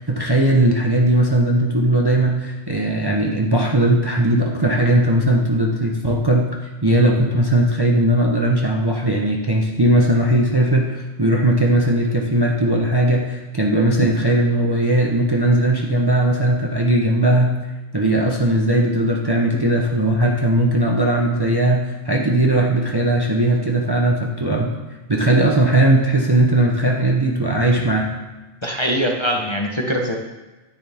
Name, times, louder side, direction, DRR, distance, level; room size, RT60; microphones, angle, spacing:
voice 1, 0.0-6.4 6.8-17.5 17.9-24.7 25.1-28.1, right 1 dB, 25° right, 0 dB, 0.8 m, -18 dB
voice 2, 28.6-30.2, equal, 25° left, 1 dB, 1.0 m, -22 dB
10.0 x 9.6 x 3.5 m, 1.2 s
omnidirectional pair, 1.2 m